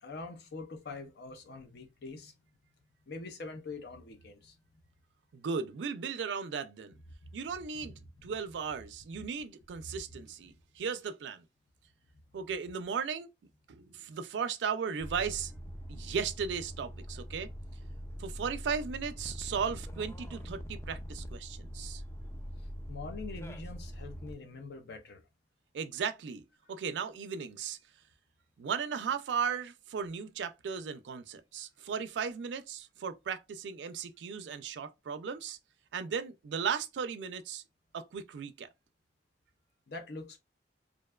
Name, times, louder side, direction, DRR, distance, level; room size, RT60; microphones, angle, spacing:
voice 1, 0.0-2.3 3.1-4.6 7.2-7.3 9.1-9.2 9.9-10.2 22.9-25.2 39.9-40.4, left 3 dB, 65° left, 0.5 m, -44 dB
voice 2, 5.3-6.9 7.3-11.4 12.3-13.3 13.7-15.5 15.9-17.5 18.2-22.0 25.7-26.4 26.7-27.8 28.6-35.6 35.9-37.6 37.9-38.7, right 6 dB, 75° right, 0.3 m, -36 dB
sound 1, 15.0-24.3, equal, 15° left, 0.3 m, -43 dB
2.5 x 2.2 x 2.2 m
head